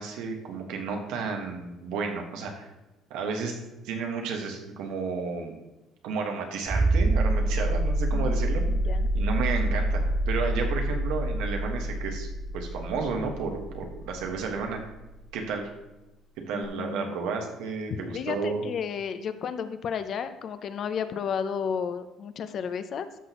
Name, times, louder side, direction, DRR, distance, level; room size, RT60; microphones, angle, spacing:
voice 1, 0.0-2.7 3.1-3.6 3.8-5.6 6.0-8.7 9.1-12.3 12.5-14.8 15.3-15.7 16.5-18.6, right 5 dB, 90° right, 3 dB, 1.5 m, -32 dB
sound 1, 6.7-15.1 16.6-16.7, right 1 dB, 20° right, 0.4 m, -26 dB
voice 2, 8.7-9.1 16.5-17.2 17.9-23.1, left 7 dB, 50° left, 11 dB, 0.6 m, -32 dB
12.5 x 6.2 x 3.0 m, 1.0 s
cardioid pair, 130°, 0 cm